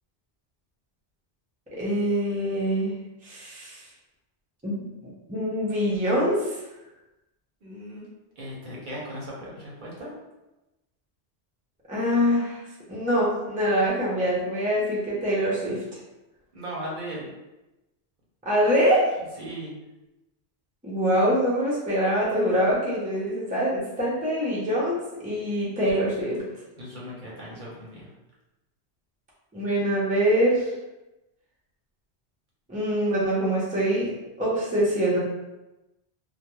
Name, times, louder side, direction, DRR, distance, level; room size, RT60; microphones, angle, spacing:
voice 1, 1.8-3.0 3.2-3.8 4.6-6.6 11.9-12.6 12.9-15.8 18.4-19.1 20.8-26.4 29.5-30.7 32.7-34.1 34.4-35.2, equal, 10° right, -6 dB, 0.4 m, -24 dB
voice 2, 7.6-8.1 8.4-10.1 16.5-17.3 19.4-19.7 26.8-28.1, equal, 55° right, -5 dB, 0.7 m, -37 dB
2.2 x 2.1 x 2.9 m, 1.0 s
omnidirectional pair, 1.1 m